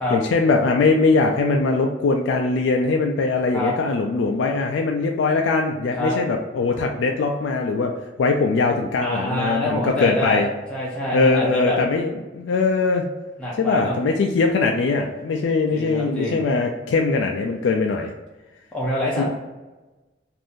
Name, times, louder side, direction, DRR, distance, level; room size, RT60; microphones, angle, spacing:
voice 1, 0.1-10.5 11.1-13.1 13.6-18.1 19.2-19.3, left 3 dB, 75° left, 2 dB, 0.3 m, -21 dB
voice 2, 9.0-11.8 13.4-14.0 15.7-16.4 18.7-19.2, left 1 dB, 5° left, -6 dB, 0.5 m, -25 dB
2.6 x 2.5 x 3.5 m, 1.2 s
head